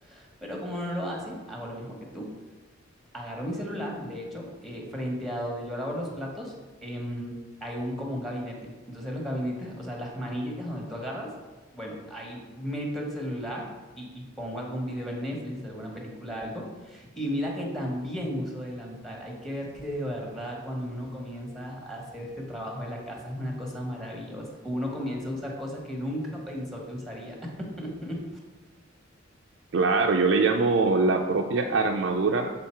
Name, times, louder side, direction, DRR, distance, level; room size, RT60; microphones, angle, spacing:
voice 1, 0.0-2.3 3.1-6.5 6.8-7.3 7.6-11.3 11.7-13.7 14.0-28.2, equal, ahead, -1 dB, 1.1 m, -34 dB
voice 2, 29.7-32.5, right 3 dB, 65° right, 3 dB, 0.4 m, -23 dB
7.3 x 3.9 x 4.4 m, 1.3 s
head